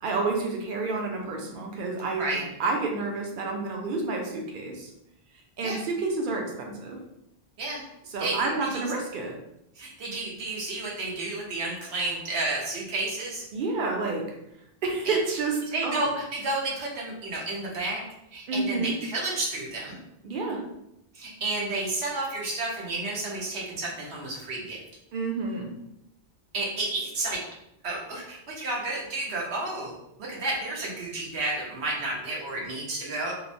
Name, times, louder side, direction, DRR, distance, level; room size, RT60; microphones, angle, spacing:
voice 1, 0.0-2.3 2.6-4.9 5.6-7.0 8.1-9.3 13.5-14.2 14.8-15.6 15.8-16.1 18.5-18.9 20.2-20.6 25.1-25.7, right 3 dB, 60° right, 1 dB, 0.7 m, -29 dB
voice 2, 8.2-8.8 9.8-13.4 15.0-15.2 15.7-18.0 18.3-20.0 21.1-24.8 26.5-27.4 27.8-29.9 30.2-33.3, right 2 dB, 80° right, -3 dB, 1.1 m, -31 dB
3.0 x 2.0 x 2.5 m, 0.81 s
omnidirectional pair, 1.1 m